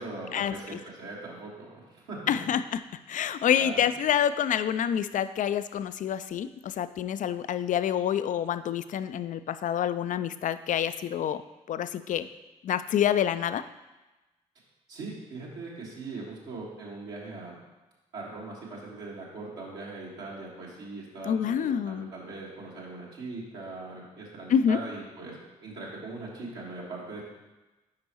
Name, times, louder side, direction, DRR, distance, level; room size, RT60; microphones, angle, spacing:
voice 1, 0.0-2.2 3.6-3.8 14.9-17.5 18.1-25.4 25.6-27.2, right 3 dB, 70° right, -5 dB, 1.7 m, -40 dB
voice 2, 2.3-2.8 3.1-11.4 11.7-12.3 12.6-13.6 21.3-22.1 24.5-24.8, left 9 dB, 45° left, 12 dB, 0.4 m, -27 dB
8.5 x 5.2 x 3.0 m, 1.1 s
figure-of-eight pair, 40°, 18 cm